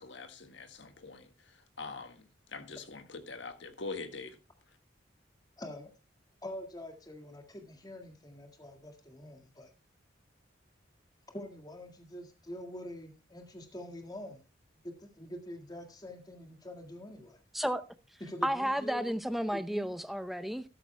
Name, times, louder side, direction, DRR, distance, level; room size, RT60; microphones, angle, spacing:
voice 1, 0.0-4.4, left 3 dB, 70° left, 1.6 m, -44 dB
voice 2, 5.6-5.9 6.4-9.7 11.3-14.4 14.7-17.4 18.2-19.1 19.5-19.9, left 1 dB, 20° left, 1.9 m, -45 dB
voice 3, 18.4-20.6, equal, ahead, 0.7 m, -32 dB
13.5 x 13.0 x 2.2 m
head